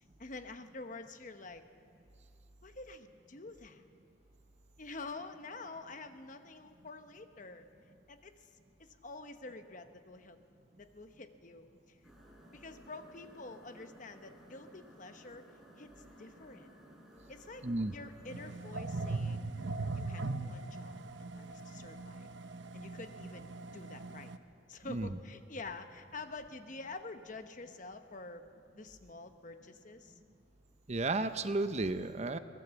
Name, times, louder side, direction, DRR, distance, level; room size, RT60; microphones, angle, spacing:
voice 1, 0.2-1.6 2.6-3.8 4.8-7.7 8.1-8.5 8.8-10.4 10.8-12.1 12.5-15.4 15.8-16.7 17.3-19.5 19.9-22.3 22.7-24.3 24.7-28.5 28.7-30.2, left 3 dB, 45° left, 8 dB, 1.1 m, -48 dB
sound 1, 12.0-18.6, equal, ahead, 4.2 m, -58 dB
voice 2, 17.6-17.9 24.9-25.1 30.9-32.4, right 2 dB, 35° right, 10 dB, 0.7 m, -33 dB
sound 2, 18.3-24.4, right 3 dB, 75° right, 0.9 m, -40 dB
23.0 x 18.0 x 7.1 m, 2.4 s
head